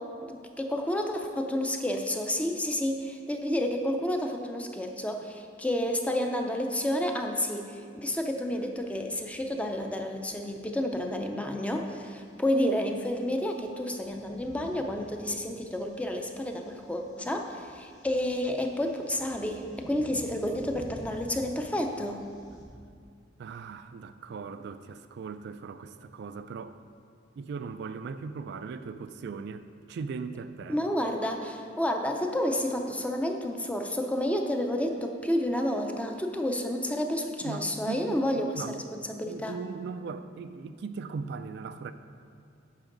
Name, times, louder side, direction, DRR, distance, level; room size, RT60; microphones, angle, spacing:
voice 1, 0.0-22.2 30.7-39.6, left 1 dB, 5° left, 3 dB, 0.5 m, -30 dB
sound 1, 8.8-22.7, equal, 85° left, 2.1 m, -52 dB
voice 2, 23.4-26.8 27.4-30.8 37.4-38.8 39.3-41.9, right 5 dB, 60° right, 10 dB, 0.3 m, -39 dB
9.8 x 6.1 x 3.9 m, 2.2 s
head